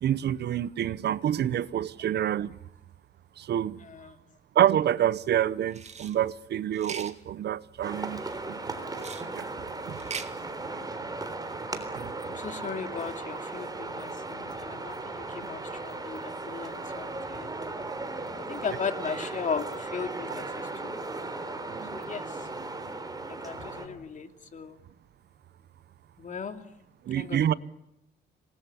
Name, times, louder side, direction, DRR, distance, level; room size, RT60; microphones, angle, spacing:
voice 1, 0.0-2.5 3.4-3.8 4.5-9.1 9.3-9.5 9.9-10.0 12.0-12.1 21.7-22.0 27.1-27.5, right 10 dB, 65° right, 0.9 m, -27 dB
voice 2, 3.8-4.2 10.5-10.8 12.3-17.6 18.5-21.0 21.9-22.5 23.3-24.8 26.2-26.6 27.2-27.5, left 6 dB, 40° left, 2.7 m, -37 dB
sound 1, 5.7-6.1 6.7-7.1 8.9-9.3 9.9-10.3, right 6 dB, 35° right, 2.1 m, -39 dB
sound 2, 7.8-23.9, right 3 dB, 20° right, 3.7 m, -37 dB
26.5 x 20.0 x 10.0 m
cardioid pair, 120°, 19 cm